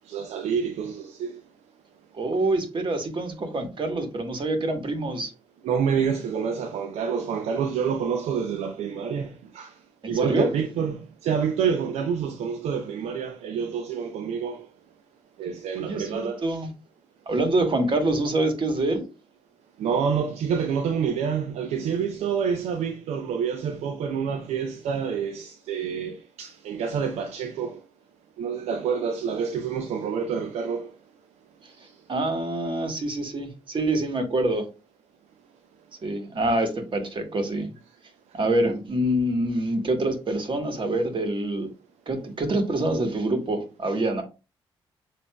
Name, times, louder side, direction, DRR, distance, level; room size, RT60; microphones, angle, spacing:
voice 1, 0.1-1.4 5.6-9.7 10.1-14.7 15.4-16.4 19.8-27.8 28.4-30.9, right 6 dB, 70° right, 0.5 m, -27 dB
voice 2, 2.1-5.3 10.0-10.5 15.8-16.7 17.3-19.0 31.6-31.7 32.1-34.7 36.0-37.7 38.3-41.7 42.1-44.2, right 1 dB, 45° right, 1.4 m, -26 dB
6.9 x 2.6 x 2.2 m
hypercardioid pair, 45°, 11 cm